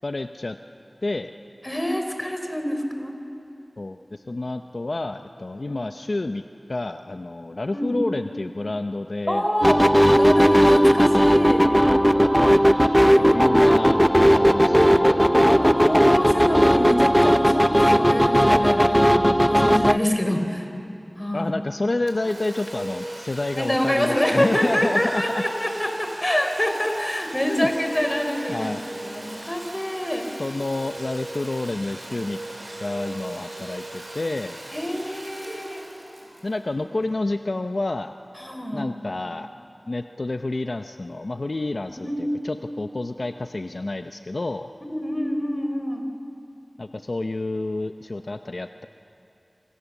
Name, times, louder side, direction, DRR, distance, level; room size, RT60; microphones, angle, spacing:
voice 1, 0.0-0.6 1.0-1.3 3.8-6.4 6.7-9.5 12.4-12.6 13.2-15.7 21.3-25.4 27.5-27.7 28.5-28.8 30.4-32.4 32.8-34.9 36.4-38.2 38.7-39.5 39.9-44.7 46.8-48.9, left 2 dB, 65° left, 7 dB, 0.7 m, -29 dB
voice 2, 1.6-3.1 5.7-5.8 7.7-8.0 9.3-9.8 10.1-11.7 13.1-13.5 15.4-20.7 21.2-21.5 23.6-28.7 29.0-30.3 34.7-35.8 38.4-38.9 42.0-42.2 44.9-46.0, equal, 20° left, 4 dB, 3.9 m, -26 dB
sound 1, 9.6-20.0, equal, ahead, 0.6 m, -17 dB
Domestic sounds home sounds, 22.1-37.5, right 1 dB, 60° right, 4.9 m, -38 dB
28.0 x 25.5 x 7.2 m, 2.7 s
wide cardioid pair, 40°, 0 cm